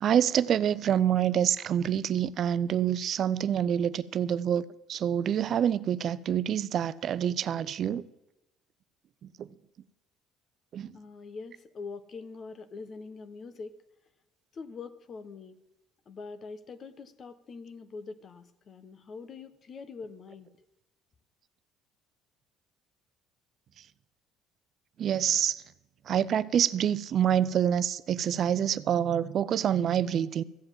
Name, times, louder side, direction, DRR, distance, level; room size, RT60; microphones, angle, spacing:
voice 1, 0.0-8.0 9.2-9.5 10.7-10.9 25.0-25.6 26.1-30.4, right 9 dB, 55° right, 0.5 m, -27 dB
voice 2, 10.9-13.8 14.5-15.6 16.1-20.5, left 4 dB, 45° left, 1.0 m, -43 dB
14.0 x 7.9 x 7.4 m
supercardioid pair, 75°, 0 cm